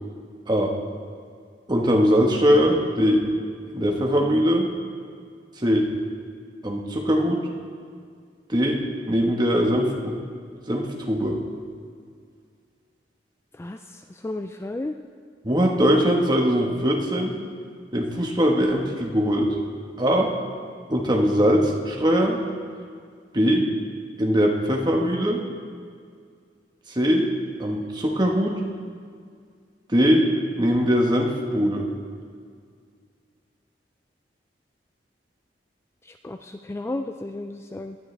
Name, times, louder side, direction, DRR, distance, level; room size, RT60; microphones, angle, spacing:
voice 1, 1.7-3.3 3.7-4.7 5.6-5.9 6.6-7.4 8.5-10.1 10.7-11.4 15.4-17.3 17.9-19.6 20.0-20.3 20.9-22.4 23.3-23.7 24.2-25.4 26.9-27.3 27.6-28.5 29.9-30.3 30.6-31.9, equal, 25° right, 0 dB, 1.5 m, -21 dB
voice 2, 13.5-15.0 36.0-38.0, left 2 dB, 15° left, 6 dB, 0.3 m, -33 dB
18.0 x 12.0 x 3.4 m, 2.1 s
head